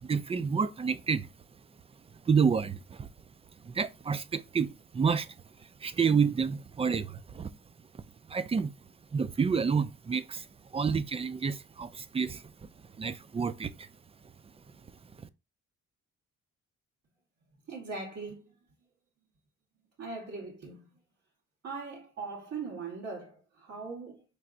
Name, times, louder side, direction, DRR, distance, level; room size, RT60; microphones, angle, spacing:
voice 1, 0.0-1.3 2.3-3.1 3.6-5.3 5.8-7.5 8.3-8.7 9.1-10.5 10.7-12.4 13.0-13.9, right 6 dB, 20° right, 0.3 m, -29 dB
voice 2, 17.7-18.5 20.0-20.9 21.6-24.2, right 4 dB, 60° right, 1.7 m, -40 dB
4.7 x 3.2 x 2.5 m
cardioid pair, 90°, 30 cm